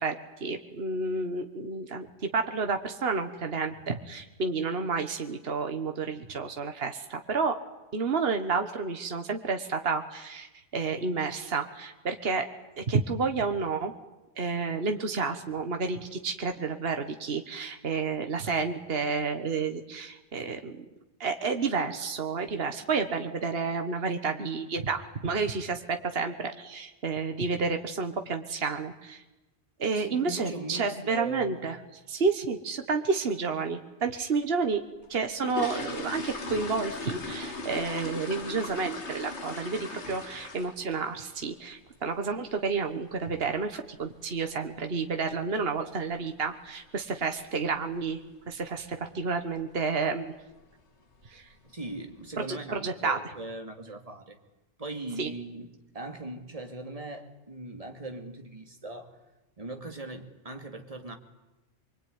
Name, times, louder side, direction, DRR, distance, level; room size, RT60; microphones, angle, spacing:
voice 1, 0.0-2.1 2.3-7.6 7.9-10.5 10.7-12.5 12.8-13.9 14.4-20.8 21.2-29.2 29.8-31.8 32.1-34.8 35.1-48.2 48.5-50.3 51.3-51.4 52.4-53.2 55.2-55.3, right 4 dB, 60° right, 1.7 m, -30 dB
voice 2, 29.9-31.7 51.6-54.4 54.8-59.2 59.6-61.1, right 2 dB, 30° right, 2.7 m, -40 dB
sound 1, 35.0-41.0 41.2-41.5 41.9-42.0 42.3-42.5 42.9-43.1 43.3-43.4 44.0-44.1 44.4-44.5 45.0-45.4 45.6-45.7 46.1-46.3 46.7-46.8 47.2-47.3 47.9-48.2 48.5-48.8 49.2-49.3 49.7-49.8 50.6-50.7 51.1-51.6 52.1-52.2, left 3 dB, 70° left, 2.4 m, -38 dB
25.0 x 24.0 x 9.6 m
omnidirectional pair, 1.2 m